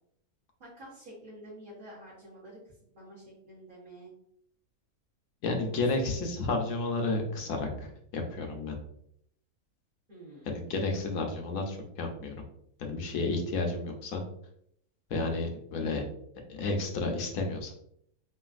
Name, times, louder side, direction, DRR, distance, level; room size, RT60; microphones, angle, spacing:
voice 1, 0.6-2.6 2.9-4.1 5.7-6.1 10.1-10.5, right 1 dB, 40° right, -8 dB, 0.9 m, -49 dB
voice 2, 5.4-8.8 10.5-12.4 12.8-14.2 15.1-16.0 16.5-17.7, left 3 dB, 70° left, 3 dB, 1.0 m, -31 dB
3.2 x 2.4 x 2.3 m, 0.71 s
omnidirectional pair, 1.7 m